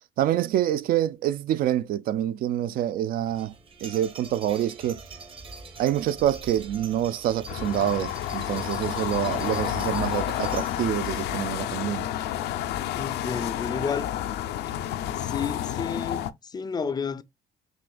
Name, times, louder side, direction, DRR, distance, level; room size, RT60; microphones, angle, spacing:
voice 1, 0.2-3.5 3.8-5.0 5.8-12.1, right 11 dB, 60° right, 0.4 m, -26 dB
sound 1, 3.3-11.1, right 4 dB, 30° right, 0.9 m, -44 dB
sound 2, 7.5-16.3, left 11 dB, 80° left, 0.5 m, -30 dB
voice 2, 12.9-14.1 15.1-17.2, left 5 dB, 25° left, 0.4 m, -31 dB
6.2 x 2.5 x 2.3 m
cardioid pair, 110°, 17 cm